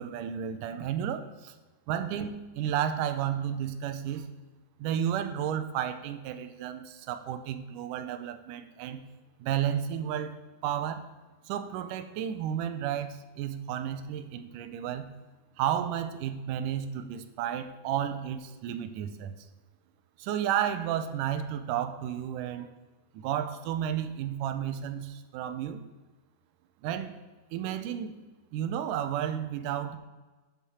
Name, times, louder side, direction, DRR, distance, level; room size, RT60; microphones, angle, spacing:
voice 1, 0.0-1.6 1.9-4.3 4.8-9.0 9.4-10.4 10.6-11.1 11.5-15.1 15.6-19.3 20.2-22.7 23.1-25.8 26.8-27.2 27.5-28.2 28.5-30.0, right 9 dB, 80° right, 10 dB, 2.2 m, -32 dB
10.5 x 7.4 x 4.3 m, 1.2 s
omnidirectional pair, 3.8 m